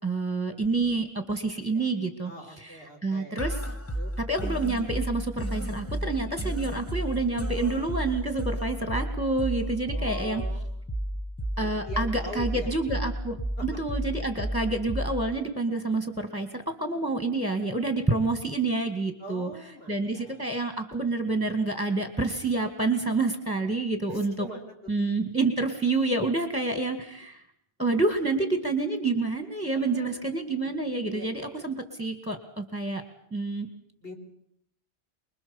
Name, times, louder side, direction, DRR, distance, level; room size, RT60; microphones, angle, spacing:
voice 1, 0.0-2.3 2.6-2.8 3.0-3.6 4.2-10.4 11.6-13.4 13.6-19.5 19.9-24.3 24.9-27.4 27.8-33.0 33.3-33.7, right 3 dB, 5° right, 7 dB, 2.1 m, -28 dB
voice 2, 1.6-2.0 2.2-3.6 3.9-4.1 9.9-10.7 11.5-12.7 13.6-13.8 19.2-20.5 24.1-24.9 29.7-30.5 31.1-31.7 34.0-34.1, left 1 dB, 55° left, 2 dB, 4.7 m, -43 dB
sound 1, 3.4-15.4, right 1 dB, 15° left, 1.1 m, -32 dB
25.0 x 21.5 x 7.2 m, 0.71 s
omnidirectional pair, 1.2 m